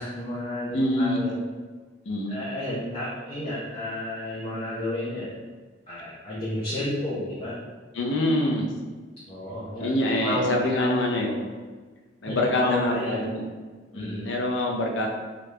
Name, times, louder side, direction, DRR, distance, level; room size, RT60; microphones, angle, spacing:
voice 1, 0.0-1.4 2.3-5.3 5.9-7.6 9.3-9.9 10.2-11.4 12.2-13.3 13.9-14.3, left 1 dB, 30° left, -9 dB, 0.6 m, -31 dB
voice 2, 0.7-1.2 2.1-2.4 7.9-8.7 9.8-11.3 12.2-13.4 13.9-15.1, left 1 dB, 70° left, 1 dB, 0.5 m, -25 dB
3.3 x 2.4 x 3.2 m, 1.4 s
head